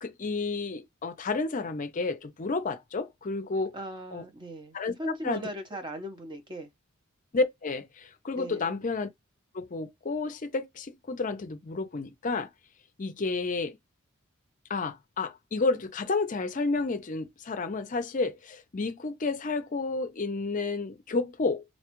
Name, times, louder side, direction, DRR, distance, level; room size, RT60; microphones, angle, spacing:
voice 1, 0.0-3.8 4.1-4.2 4.7-5.5 7.3-9.1 9.5-12.5 13.0-13.8 14.7-21.6, left 3 dB, 35° left, 0.5 m, -31 dB
voice 2, 3.7-6.7 8.4-8.7, right 1 dB, 20° right, 0.6 m, -38 dB
4.0 x 2.3 x 2.9 m
head